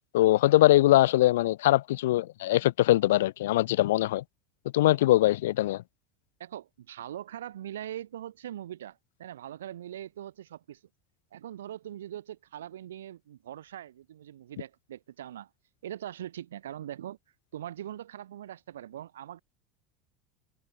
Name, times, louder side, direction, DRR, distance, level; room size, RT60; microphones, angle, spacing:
voice 1, 0.1-4.2 4.7-5.8, left 15 dB, 80° left, 0.6 m, -22 dB
voice 2, 6.4-10.8 11.3-15.5 15.8-17.2 17.5-19.4, right 11 dB, 85° right, 7.8 m, -41 dB
hypercardioid pair, 90°, 0 cm